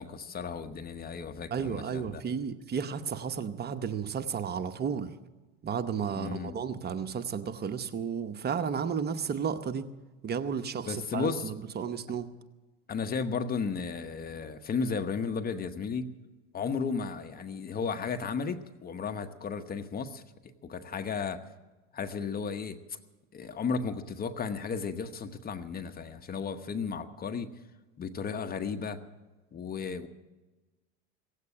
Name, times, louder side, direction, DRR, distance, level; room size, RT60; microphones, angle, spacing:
voice 1, 0.0-2.2 6.1-6.6 10.9-11.5 12.9-16.1 16.5-20.2 20.6-21.4 21.9-23.0 23.3-27.5 28.0-29.0 29.5-30.1, left 5 dB, 30° left, 9 dB, 1.0 m, -34 dB
voice 2, 1.5-5.2 5.6-9.9 10.2-12.3, right 7 dB, 30° right, 9 dB, 0.8 m, -33 dB
17.0 x 8.2 x 9.8 m, 1.2 s
supercardioid pair, 100°, 32 cm